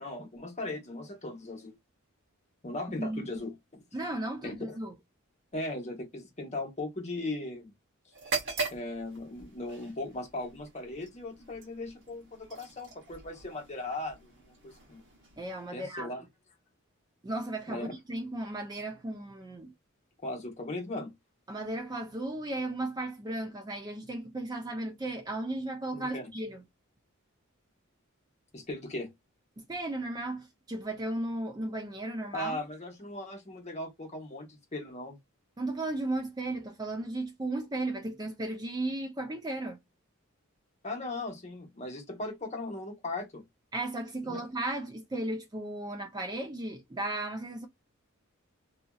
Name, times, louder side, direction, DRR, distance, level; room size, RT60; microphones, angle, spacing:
voice 1, 0.0-1.7 2.6-3.8 4.4-4.8 5.5-7.7 8.7-15.0 15.7-16.2 17.7-17.9 20.2-21.1 25.9-26.2 28.5-29.1 32.3-35.2 40.8-43.4 44.2-44.4, left 2 dB, 35° left, 1.0 m, -38 dB
voice 2, 3.9-4.9 15.4-16.1 17.2-19.7 21.5-26.6 29.6-32.6 35.6-39.8 43.7-47.7, right 2 dB, 20° right, 0.4 m, -35 dB
sound 1, 8.1-15.9, right 4 dB, 60° right, 1.1 m, -41 dB
2.8 x 2.6 x 2.3 m
head